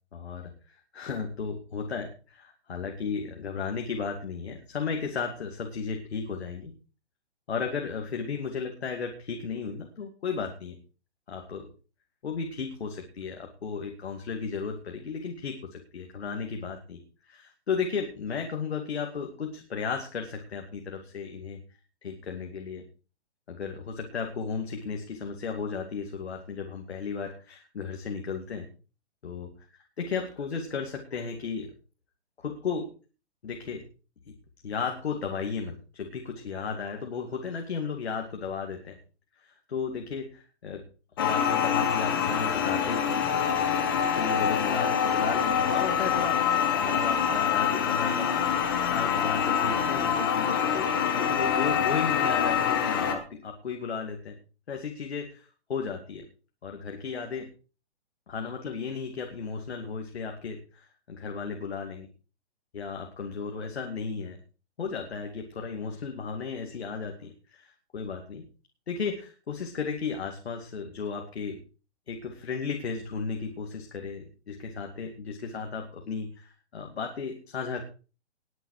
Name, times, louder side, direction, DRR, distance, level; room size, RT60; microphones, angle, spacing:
voice 1, 0.1-6.7 7.5-10.8 11.3-11.7 12.2-21.6 22.0-22.8 23.5-28.7 29.2-31.7 32.4-32.9 33.4-33.8 34.6-39.0 39.4-40.8 41.2-43.5 44.1-48.3 48.9-54.4 54.7-56.2 56.6-57.5 58.3-62.1 62.7-64.4 64.8-68.4 68.9-71.6 72.1-77.8, left 5 dB, 65° left, 3 dB, 2.5 m, -34 dB
sound 1, 41.2-53.2, left 7 dB, 20° left, 1.2 m, -25 dB
20.0 x 7.8 x 4.9 m, 0.36 s
hypercardioid pair, 180°, 35 cm